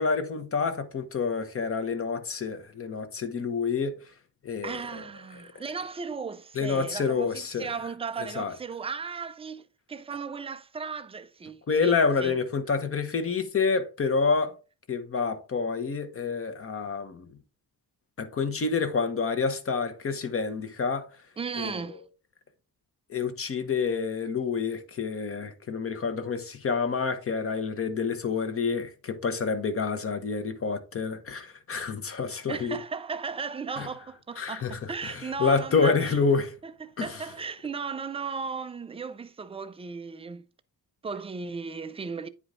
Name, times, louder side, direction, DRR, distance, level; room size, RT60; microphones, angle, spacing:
voice 1, 0.0-4.0 4.4-4.8 6.6-7.7 8.3-8.5 11.7-14.5 14.9-17.3 18.2-21.1 21.6-21.8 23.1-32.8 33.8-33.9 34.4-36.5 37.0-37.1, left 5 dB, 35° left, 1.0 m, -28 dB
voice 2, 4.6-12.3 21.4-22.0 32.5-36.2 36.6-40.4 41.0-42.3, right 5 dB, 15° right, 0.4 m, -36 dB
9.8 x 4.9 x 3.7 m
wide cardioid pair, 175°, 39 cm